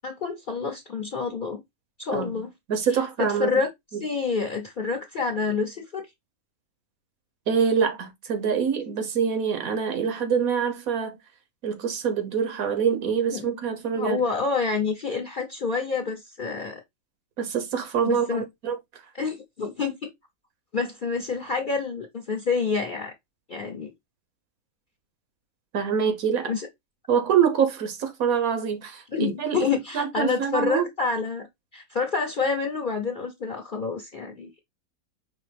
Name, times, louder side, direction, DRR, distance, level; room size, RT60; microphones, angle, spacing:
voice 1, 0.0-1.6 2.0-2.5 2.9-3.7 4.0-6.1 13.3-13.5 13.9-16.8 18.0-18.4 19.1-20.0 20.7-23.1 23.5-23.9 26.5-26.7 29.1-31.5 31.7-34.5, left 4 dB, 45° left, 0.8 m, -28 dB
voice 2, 2.1-2.4 2.7-3.6 7.5-11.2 11.6-14.2 17.4-18.8 25.7-26.5 27.1-29.6 29.9-30.9, right 7 dB, 80° right, 1.4 m, -25 dB
5.5 x 2.9 x 3.3 m
omnidirectional pair, 1.5 m